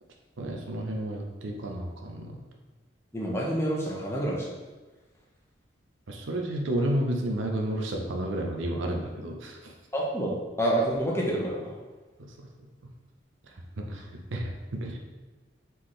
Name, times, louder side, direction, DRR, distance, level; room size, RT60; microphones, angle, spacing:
voice 1, 0.4-2.4 6.1-9.7 12.2-12.5 13.9-15.0, right 1 dB, 75° right, 1 dB, 0.7 m, -31 dB
voice 2, 3.1-4.5 9.9-11.7, right 1 dB, 15° left, -3 dB, 0.7 m, -28 dB
4.2 x 3.8 x 3.2 m, 1.2 s
head